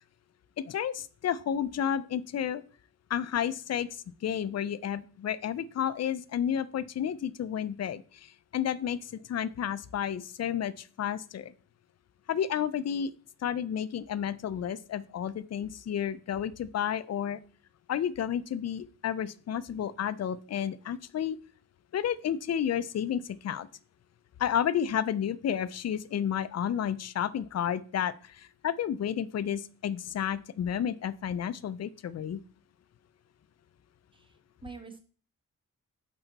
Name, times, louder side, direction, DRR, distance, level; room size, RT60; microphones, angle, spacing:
voice 1, 0.6-2.6 3.1-11.5 12.3-13.1 13.4-17.4 17.9-21.4 21.9-23.7 24.4-32.4, left 9 dB, 50° left, 16 dB, 0.4 m, -31 dB
voice 2, 34.1-35.0, right 4 dB, 15° right, 6 dB, 1.2 m, -47 dB
7.7 x 4.5 x 4.0 m, 0.42 s
wide cardioid pair, 105°, 33 cm